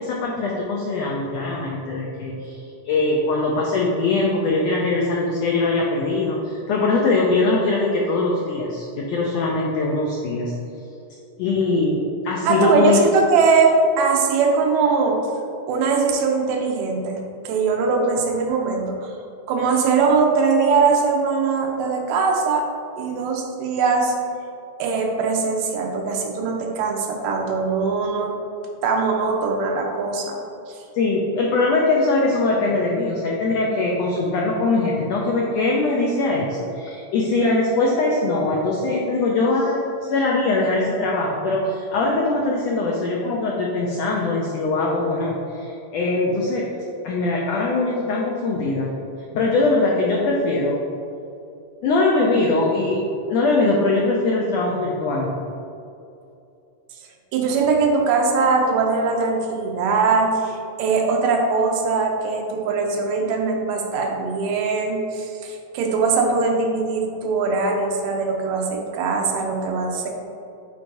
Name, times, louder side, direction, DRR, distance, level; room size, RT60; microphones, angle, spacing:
voice 1, 0.0-2.6 2.8-10.5 11.4-13.0 30.9-46.7 47.0-48.9 49.3-50.8 51.8-53.0 53.3-55.3, left 3 dB, 85° left, -2 dB, 1.4 m, -21 dB
voice 2, 12.4-15.2 15.7-19.1 19.5-22.7 23.0-24.2 24.8-28.4 28.8-30.4 30.7-30.8 57.3-70.1, right 4 dB, 90° right, 1 dB, 2.4 m, -21 dB
9.3 x 4.7 x 2.6 m, 2.7 s
omnidirectional pair, 3.7 m